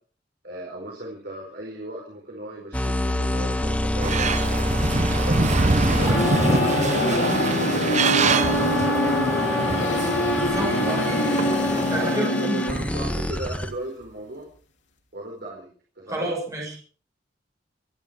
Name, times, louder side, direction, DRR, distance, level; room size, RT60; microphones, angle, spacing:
voice 1, 0.4-8.5 9.1-9.6 12.0-14.5 15.1-15.7 16.0-16.3, right 1 dB, 60° right, -2 dB, 4.7 m, -37 dB
sound 1, 2.7-13.7, left 1 dB, 10° left, 1.7 m, -27 dB
sound 2, 4.0-12.2, right 3 dB, 40° right, 0.9 m, -25 dB
sound 3, 5.8-13.2, left 1 dB, 85° left, 3.0 m, -25 dB
voice 2, 10.4-11.1 11.9-12.6 16.1-16.8, right 1 dB, 20° right, -2 dB, 6.9 m, -29 dB
27.0 x 10.5 x 4.7 m, 0.42 s
head